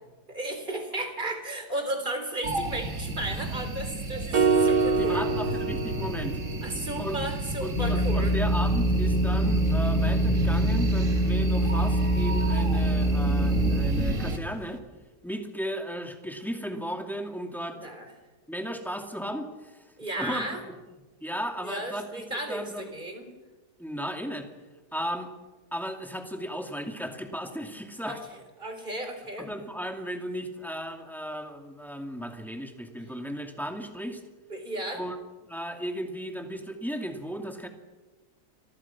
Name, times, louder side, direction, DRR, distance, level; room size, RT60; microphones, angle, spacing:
voice 1, 0.3-5.3 6.6-8.3 17.8-18.1 20.0-20.6 21.6-23.3 28.1-29.5 34.5-35.0, right 1 dB, 30° right, 6 dB, 3.9 m, -34 dB
sound 1, 2.4-14.4, right 1 dB, 50° right, 2.4 m, -31 dB
sound 2, 4.3-6.7, right 4 dB, 85° right, 2.4 m, -25 dB
voice 2, 5.0-6.4 7.0-7.2 7.6-14.8 15.2-17.9 18.5-19.8 20.1-20.7 21.2-22.1 22.5-22.9 23.8-24.5 24.9-25.3 25.7-28.2 29.4-34.2 34.9-35.2 35.5-37.7, equal, ahead, 4 dB, 2.4 m, -35 dB
sound 3, 7.8-14.2, right 1 dB, 35° left, 1.3 m, -25 dB
30.0 x 24.5 x 6.0 m, 1.2 s
omnidirectional pair, 1.7 m